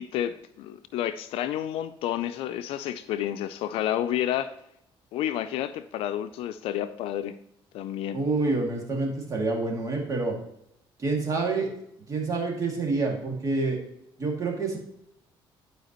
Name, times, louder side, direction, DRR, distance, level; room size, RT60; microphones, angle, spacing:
voice 1, 0.0-4.5 5.1-7.4 7.7-8.2, left 11 dB, 85° left, 11 dB, 0.4 m, -30 dB
voice 2, 8.1-10.3 11.0-11.7 12.1-13.8 14.2-14.8, right 3 dB, 35° right, 0 dB, 2.2 m, -27 dB
11.0 x 4.9 x 3.0 m, 0.77 s
cardioid pair, 120°, 10 cm